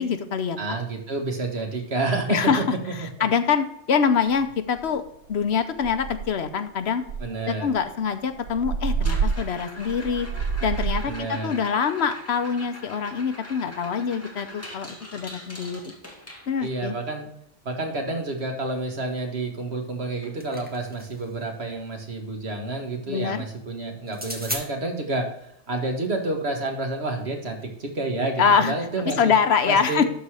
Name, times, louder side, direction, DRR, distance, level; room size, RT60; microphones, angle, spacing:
voice 1, 0.0-0.8 2.3-2.6 3.2-5.0 5.3-7.0 7.5-10.3 10.6-15.9 16.5-16.9 23.1-23.4 28.4-28.7 29.0-30.0, left 6 dB, 65° left, 10 dB, 1.0 m, -24 dB
voice 2, 0.6-2.4 3.0-3.1 7.2-7.7 11.1-11.5 16.6-17.3 17.7-29.3 29.6-30.0, right 2 dB, 60° right, 3 dB, 1.9 m, -29 dB
sound 1, 4.3-4.4 4.8-5.1 5.4-5.5 5.8-6.5 7.0-11.2, right 5 dB, 80° right, 0.9 m, -28 dB
sound 2, 8.9-16.9 19.1-19.2 19.5-19.8 20.2-20.3 20.9-21.0 22.9-23.0, left 1 dB, 10° left, 1.9 m, -42 dB
sound 3, 20.0-21.3 24.1-24.6, equal, 10° right, 1.5 m, -35 dB
12.0 x 4.1 x 4.9 m, 0.73 s
omnidirectional pair, 1.2 m